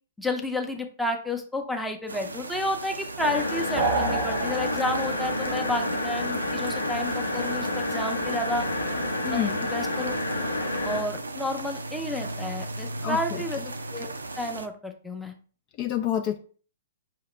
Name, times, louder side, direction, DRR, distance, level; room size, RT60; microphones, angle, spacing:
voice 1, 0.2-8.7 9.3-10.1 10.8-13.6 13.9-14.1 14.4-15.4, left 1 dB, ahead, 3 dB, 0.7 m, -31 dB
sound 1, 2.1-14.7, right 2 dB, 80° right, 0.4 m, -37 dB
sound 2, 3.2-11.0, left 2 dB, 85° left, 0.9 m, -29 dB
sound 3, 3.8-5.3, right 4 dB, 40° right, 0.7 m, -28 dB
voice 2, 9.2-9.6 13.0-13.4 15.8-16.4, left 11 dB, 35° left, 5 dB, 0.4 m, -28 dB
5.5 x 2.8 x 3.2 m, 0.40 s
figure-of-eight pair, 115°, 0 cm